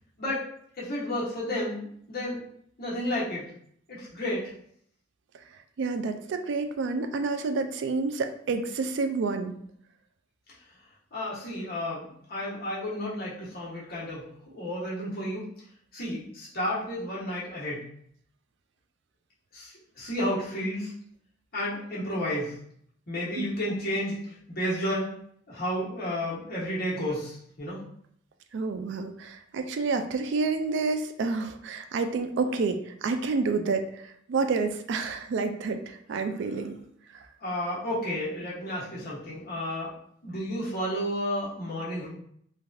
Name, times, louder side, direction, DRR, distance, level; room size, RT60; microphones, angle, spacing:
voice 1, 0.8-2.4 2.8-3.4 3.9-4.4 11.1-15.5 15.9-17.8 19.5-20.9 21.5-22.5 23.1-25.1 25.5-27.8 37.4-39.9 40.2-42.1, left 1 dB, 50° left, -8 dB, 1.2 m, -32 dB
voice 2, 5.8-9.5 23.4-23.5 28.5-36.7 37.1-37.2, right 4 dB, 65° right, 7 dB, 0.3 m, -29 dB
3.1 x 2.4 x 2.6 m, 0.67 s
head